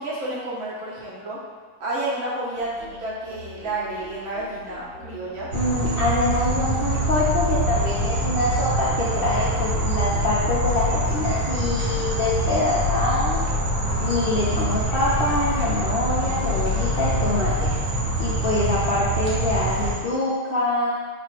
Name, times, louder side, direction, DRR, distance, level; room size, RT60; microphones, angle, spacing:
voice 1, 0.0-1.4 1.8-5.5, right 2 dB, 50° right, -8 dB, 1.2 m, -30 dB
sound 1, 2.6-18.1, equal, 15° right, 0.7 m, -43 dB
voice 2, 5.5-13.4 14.0-17.7 18.2-20.9, left 2 dB, 60° left, -8 dB, 0.6 m, -25 dB
sound 2, 5.5-20.0, right 1 dB, 70° right, 1.4 m, -24 dB
4.1 x 2.5 x 4.7 m, 1.5 s
omnidirectional pair, 1.7 m